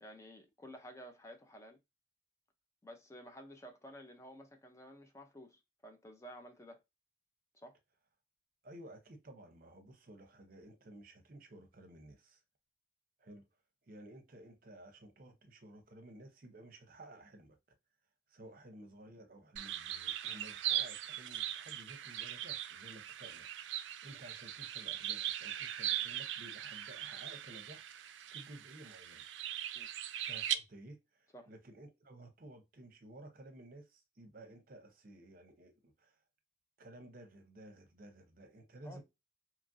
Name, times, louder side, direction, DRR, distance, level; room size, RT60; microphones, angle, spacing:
voice 1, 0.0-1.8 2.8-6.8 7.5-7.8 29.7-29.9 31.3-31.5 38.8-39.0, equal, 15° left, 0.4 m, -52 dB
voice 2, 8.6-12.4 13.2-13.4 13.9-17.6 18.3-29.3 30.2-36.2 36.8-39.0, right 1 dB, 50° right, 0.7 m, -54 dB
sound 1, 19.6-30.6, right 12 dB, 85° right, 0.3 m, -40 dB
2.9 x 2.5 x 2.5 m
head